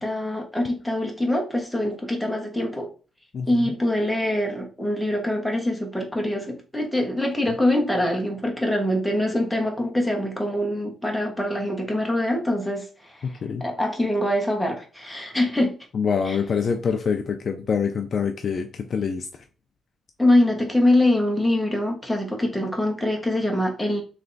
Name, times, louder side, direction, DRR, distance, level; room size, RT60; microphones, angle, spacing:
voice 1, 0.0-2.9 3.5-12.9 13.2-13.3 13.6-15.7 16.2-16.4 20.2-24.0, left 1 dB, ahead, 1 dB, 1.0 m, -24 dB
voice 2, 3.3-3.7 13.4-13.6 15.9-19.3, left 6 dB, 40° left, 5 dB, 0.5 m, -25 dB
3.4 x 3.3 x 4.0 m, 0.34 s
cardioid pair, 160°, 0 cm